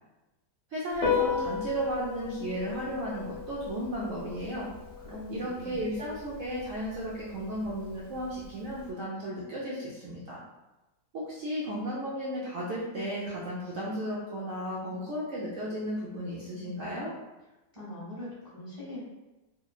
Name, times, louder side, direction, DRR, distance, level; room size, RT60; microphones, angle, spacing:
voice 1, 0.7-4.7 5.3-10.4 11.1-17.1, equal, 85° right, -6 dB, 0.7 m, -34 dB
Piano, 0.9-8.9, left 6 dB, 70° left, 1.0 m, -36 dB
voice 2, 5.1-5.9 17.7-19.0, left 1 dB, 20° left, -9 dB, 1.0 m, -41 dB
2.9 x 2.1 x 2.3 m, 1.1 s
omnidirectional pair, 1.9 m